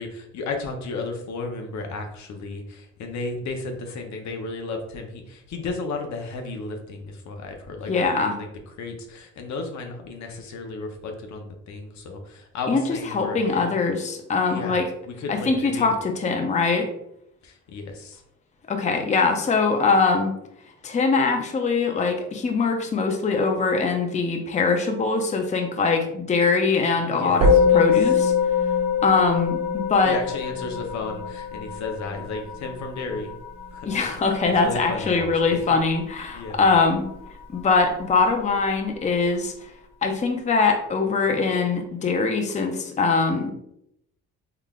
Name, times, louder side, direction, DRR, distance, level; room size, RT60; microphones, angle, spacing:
voice 1, 0.0-8.5 8.8-13.9 14.5-14.8 15.0-15.9 17.4-18.2 27.0-27.8 30.0-33.3 33.7-33.9 34.2-35.7 36.3-36.7, left 3 dB, 70° left, 3 dB, 0.7 m, -34 dB
voice 2, 7.9-8.3 12.7-12.8 13.1-14.8 15.3-16.9 18.7-20.3 20.8-28.3 29.0-30.2 33.9-37.0 37.5-39.5 40.0-43.5, left 4 dB, 25° left, 4 dB, 0.5 m, -22 dB
Musical instrument, 27.4-36.9, left 5 dB, 65° right, 1.3 m, -24 dB
3.8 x 3.3 x 2.3 m, 0.76 s
cardioid pair, 90°, 30 cm